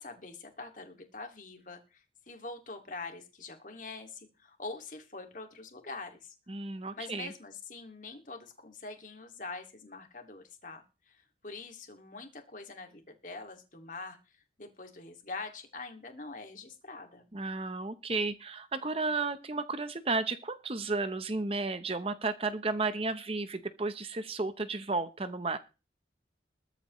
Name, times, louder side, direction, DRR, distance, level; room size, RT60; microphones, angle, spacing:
voice 1, 0.0-6.4 6.9-14.2 14.6-17.2, left 3 dB, 45° left, 5 dB, 2.3 m, -44 dB
voice 2, 6.5-7.3 17.3-25.6, right 3 dB, 30° right, 11 dB, 0.8 m, -33 dB
22.0 x 8.3 x 3.1 m, 0.32 s
head